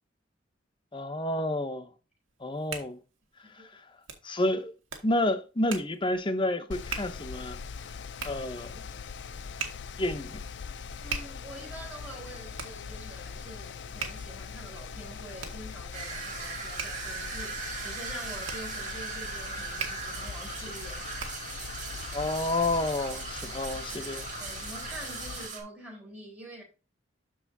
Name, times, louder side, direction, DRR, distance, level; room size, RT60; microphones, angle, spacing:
voice 1, 0.9-1.9 2.4-3.0 3.7-3.8 4.2-4.7 5.0-7.6 8.2-8.9 10.0-10.4 22.1-24.3, left 1 dB, 25° left, 0.8 m, -30 dB
Hands, 2.3-21.6, right 6 dB, 80° right, 1.9 m, -43 dB
Mechanical fan, 6.7-25.5, left 5 dB, 60° left, 0.5 m, -41 dB
voice 2, 11.0-21.1 23.9-24.1 24.4-26.6, right 1 dB, 5° right, 3.9 m, -46 dB
sound 1, 15.9-25.6, right 4 dB, 40° right, 2.1 m, -39 dB
13.0 x 4.8 x 2.7 m
head